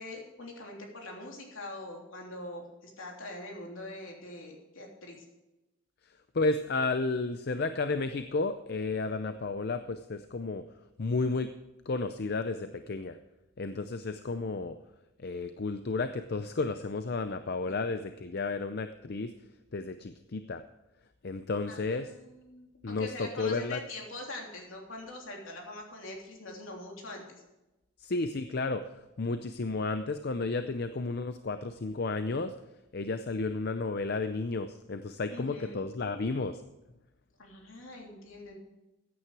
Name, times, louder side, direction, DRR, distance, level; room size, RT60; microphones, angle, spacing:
voice 1, 0.0-5.2 21.7-27.2 35.3-35.8 37.4-38.6, left 2 dB, 70° left, 0 dB, 3.2 m, -43 dB
voice 2, 6.3-10.6 11.0-11.5 11.9-13.2 13.6-14.7 15.2-19.3 19.7-20.6 21.2-22.1 22.8-23.8 28.0-28.9 29.2-32.5 32.9-36.6, left 3 dB, 50° left, 9 dB, 0.6 m, -32 dB
15.0 x 9.6 x 4.8 m, 0.98 s
head